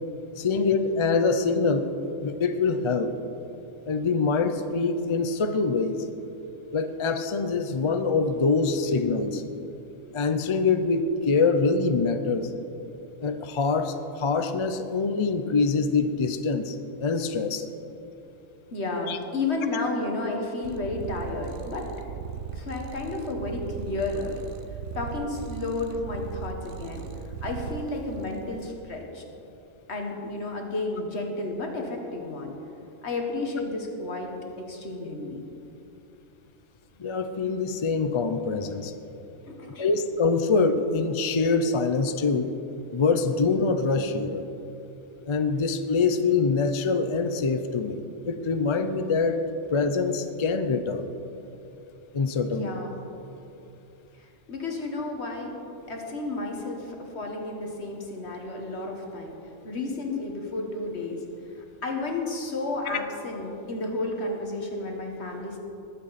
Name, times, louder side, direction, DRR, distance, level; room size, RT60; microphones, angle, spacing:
voice 1, 0.4-3.1 3.9-6.0 6.7-9.4 10.1-12.5 13.2-17.7 19.1-19.2 37.0-38.9 39.8-42.5 42.9-44.4 45.3-49.4 49.7-51.1 52.1-52.7, left 4 dB, 40° left, 9 dB, 0.4 m, -25 dB
voice 2, 18.7-21.9 22.5-24.4 25.0-27.0 27.4-29.2 29.9-32.5 33.0-35.4 39.4-39.9 52.6-52.9 54.2-55.5 55.9-59.4 59.6-61.2 61.6-65.6, left 2 dB, 60° left, 1 dB, 1.8 m, -32 dB
Purr, 20.6-28.7, right 6 dB, 70° right, 1.0 m, -38 dB
20.5 x 7.9 x 4.1 m, 2.8 s
omnidirectional pair, 1.3 m